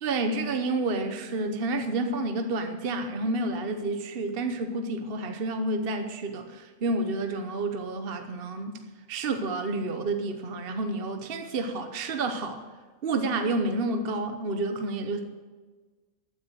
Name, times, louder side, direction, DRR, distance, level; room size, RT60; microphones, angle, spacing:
voice 1, 0.0-8.7 9.1-12.6 13.0-15.2, right 2 dB, 45° right, 6 dB, 1.1 m, -29 dB
15.0 x 9.6 x 6.3 m, 1.3 s
omnidirectional pair, 1.5 m